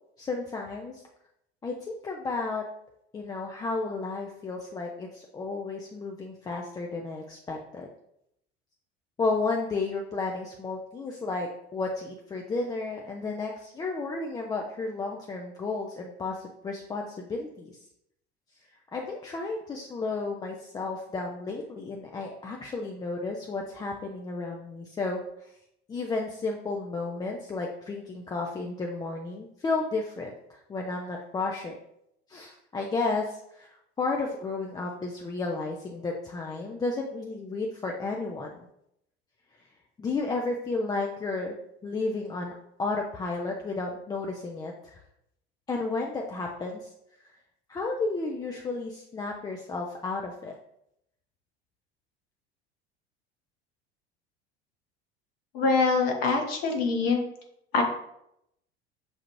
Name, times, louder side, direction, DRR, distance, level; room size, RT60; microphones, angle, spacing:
voice 1, 0.2-1.0 1.6-2.6 3.1-7.9 9.2-17.8 18.9-25.2 25.9-31.7 32.3-33.7 34.0-38.6 40.0-41.6 41.8-45.0 45.7-46.9 47.2-47.3 47.7-50.5, left 3 dB, 15° left, 0 dB, 0.3 m, -32 dB
voice 2, 55.5-57.2 57.7-57.8, left 4 dB, 65° left, 2 dB, 1.0 m, -24 dB
6.6 x 2.4 x 3.0 m, 0.79 s
figure-of-eight pair, 70°, 32 cm